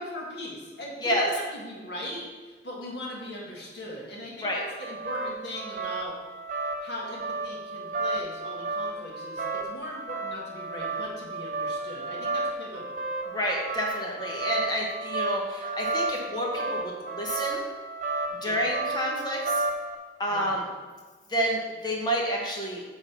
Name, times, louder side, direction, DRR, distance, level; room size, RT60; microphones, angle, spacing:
voice 1, 0.0-6.1 6.8-12.9 18.4-18.6 20.3-20.5, left 1 dB, 65° left, -3 dB, 1.6 m, -39 dB
sound 1, 4.6-20.0, right 3 dB, 45° right, 0.8 m, -33 dB
voice 2, 13.3-17.6 18.4-19.6 20.2-20.7 21.3-22.8, equal, 25° left, -2 dB, 1.2 m, -29 dB
8.3 x 4.0 x 5.7 m, 1.4 s
head